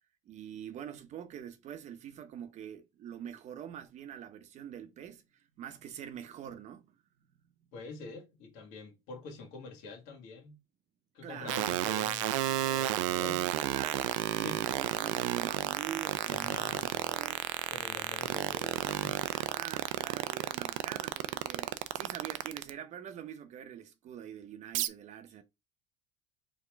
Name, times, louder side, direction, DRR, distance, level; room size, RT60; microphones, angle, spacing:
voice 1, 0.3-7.0 11.2-11.6 13.2-17.5 18.3-18.5 19.3-25.4, right 9 dB, 45° right, 0.8 m, -45 dB
voice 2, 7.7-10.6 11.1-13.4 14.4-14.6 16.3-17.1 17.7-19.2, left 3 dB, 70° left, 1.8 m, -46 dB
sound 1, 11.5-22.7 24.7-24.9, right 15 dB, 80° right, 0.5 m, -31 dB
4.6 x 2.9 x 3.4 m
supercardioid pair, 90°, 16 cm